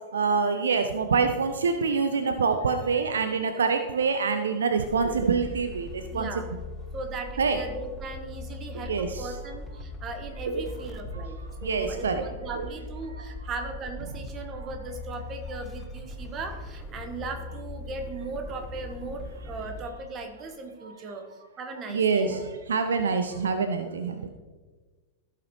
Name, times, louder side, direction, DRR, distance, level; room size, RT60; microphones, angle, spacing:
voice 1, 0.1-6.3 7.4-7.6 8.9-9.3 10.5-10.6 11.1-11.3 11.6-12.2 12.5-12.7 14.6-14.7 21.9-24.3, right 5 dB, 70° right, 8 dB, 0.5 m, -26 dB
sound 1, 4.8-19.9, left 2 dB, 15° left, 0.9 m, -40 dB
voice 2, 6.1-6.5 6.9-21.2 21.6-22.3, right 3 dB, 30° right, 5 dB, 1.2 m, -38 dB
15.0 x 5.7 x 3.0 m, 1.4 s
figure-of-eight pair, 90°, 0 cm